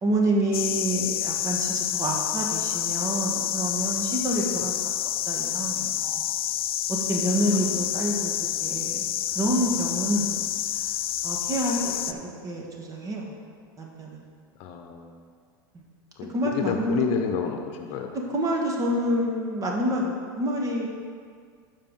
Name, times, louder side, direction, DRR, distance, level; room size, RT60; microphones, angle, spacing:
voice 1, 0.0-4.8 5.3-6.3 6.9-8.3 8.6-9.1 9.3-10.4 11.2-13.3 13.8-14.2 15.7-15.8 16.3-17.0 18.3-20.9, right 1 dB, 30° right, 0 dB, 1.6 m, -27 dB
sound 1, 0.5-12.1, left 12 dB, 80° left, 0.4 m, -28 dB
voice 2, 4.3-4.7 7.5-7.9 14.6-15.3 16.2-18.1, left 6 dB, 55° left, 4 dB, 0.9 m, -30 dB
12.0 x 4.9 x 3.9 m, 2.1 s
hypercardioid pair, 105°, 12 cm